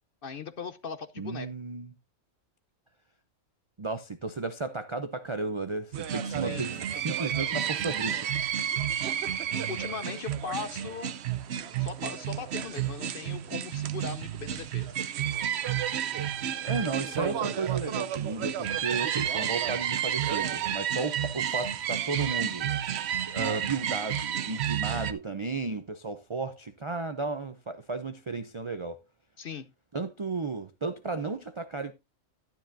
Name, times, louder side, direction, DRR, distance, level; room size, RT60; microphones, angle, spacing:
voice 1, 0.2-1.5 6.3-6.7 9.5-11.1 11.8-14.9 29.4-29.6, left 5 dB, 50° left, 0.8 m, -39 dB
voice 2, 1.2-1.9 3.8-8.3 16.6-22.7 23.3-29.0 29.9-31.9, right 3 dB, 45° right, 0.4 m, -34 dB
sound 1, 5.9-25.1, right 10 dB, 60° right, 0.8 m, -31 dB
12.0 x 10.0 x 2.6 m
omnidirectional pair, 1.4 m